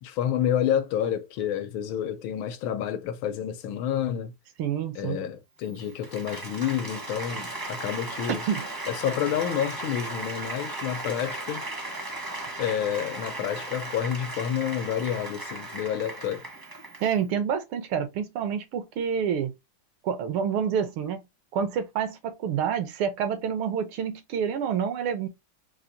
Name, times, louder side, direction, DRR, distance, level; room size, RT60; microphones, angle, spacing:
voice 1, 0.0-4.3 4.9-8.4 8.9-11.6 12.6-16.4, left 9 dB, 80° left, 1.4 m, -29 dB
voice 2, 4.6-5.2 8.3-8.7 17.0-19.5 20.0-21.2 21.5-25.3, right 7 dB, 80° right, 1.6 m, -28 dB
Applause, 5.6-17.2, right 2 dB, 20° right, 0.5 m, -36 dB
4.1 x 2.5 x 2.5 m
omnidirectional pair, 2.3 m